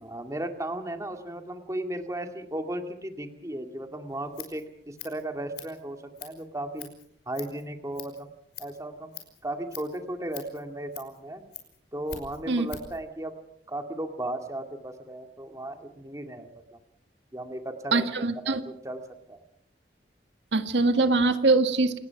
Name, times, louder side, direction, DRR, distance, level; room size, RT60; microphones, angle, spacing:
voice 1, 0.0-6.9 7.3-8.3 8.6-9.1 9.4-11.4 11.9-13.3 13.7-16.8 17.3-18.1 18.4-19.0 19.3-19.4, right 1 dB, 20° right, 5 dB, 2.3 m, -35 dB
Scissors, 4.1-13.0, left 8 dB, 65° left, 5.7 m, -46 dB
voice 2, 17.9-18.6 20.5-22.0, right 3 dB, 85° right, 8 dB, 1.9 m, -23 dB
28.0 x 19.5 x 5.9 m, 0.69 s
head